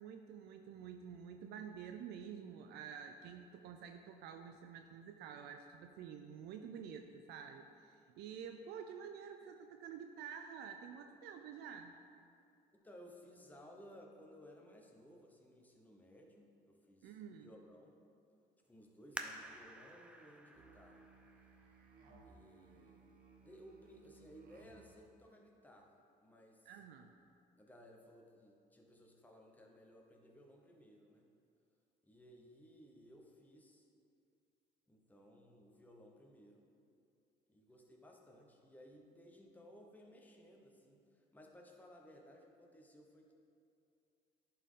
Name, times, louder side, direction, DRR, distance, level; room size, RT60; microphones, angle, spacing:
voice 1, 0.0-12.0 17.0-17.5 26.7-27.1, right 7 dB, 80° right, 6 dB, 0.4 m, -49 dB
voice 2, 12.8-18.0 18.7-21.0 22.2-23.1 23.4-26.7 27.6-31.3 32.0-33.9 34.9-36.6 37.5-43.3, equal, 10° left, 1 dB, 0.9 m, -59 dB
sound 1, 19.1-22.5 23.1-23.2 23.9-24.2 24.6-24.7, right 1 dB, 5° right, 0.4 m, -50 dB
Musical instrument, 20.5-25.0, right 3 dB, 60° right, 1.1 m, -62 dB
10.5 x 4.2 x 3.7 m, 2.6 s
cardioid pair, 110°, 17 cm